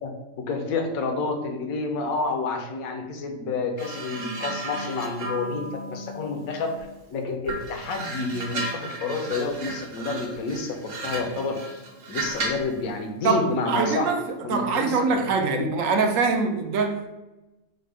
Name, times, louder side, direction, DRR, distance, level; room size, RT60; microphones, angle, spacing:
voice 1, 0.0-11.8 12.1-14.1 14.4-15.2 15.5-15.9, left 3 dB, 75° left, 1.1 m, -29 dB
sound 1, 3.8-7.0 7.5-12.7 13.7-13.9, right 1 dB, 45° right, 0.7 m, -34 dB
voice 2, 13.2-17.2, right 4 dB, 70° right, 0.9 m, -24 dB
5.0 x 2.2 x 4.7 m
omnidirectional pair, 1.5 m